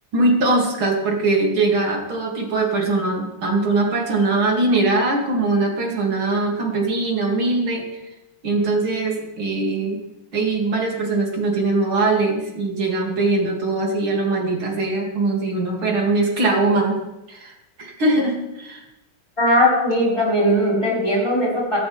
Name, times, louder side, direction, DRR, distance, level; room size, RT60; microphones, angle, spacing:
voice 1, 0.1-8.0 8.4-10.0 10.3-17.0 17.3-18.9, right 2 dB, 85° right, 0 dB, 3.6 m, -21 dB
voice 2, 19.4-21.8, equal, 15° left, -5 dB, 5.5 m, -19 dB
16.5 x 15.0 x 3.5 m, 0.94 s
omnidirectional pair, 2.2 m